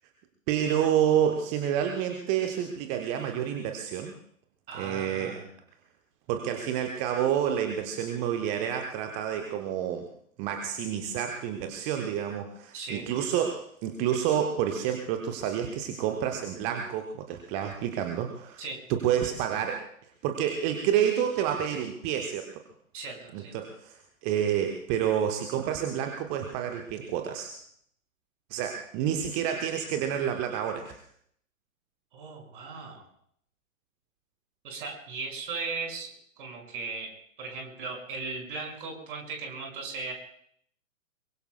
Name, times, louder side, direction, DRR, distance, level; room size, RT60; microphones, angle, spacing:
voice 1, 0.5-4.1 4.7-5.4 6.3-10.1 10.4-18.6 18.9-19.9 20.2-22.6 23.3-27.5 28.5-31.0, right 9 dB, 15° right, 4 dB, 0.8 m, -29 dB
voice 2, 4.7-5.5 12.7-13.1 18.6-18.8 22.9-23.5 32.1-33.1 34.6-36.1 36.4-37.1 37.4-40.1, right 4 dB, 40° right, 1 dB, 5.6 m, -37 dB
25.0 x 23.0 x 2.2 m, 0.64 s
figure-of-eight pair, 120°, 40 cm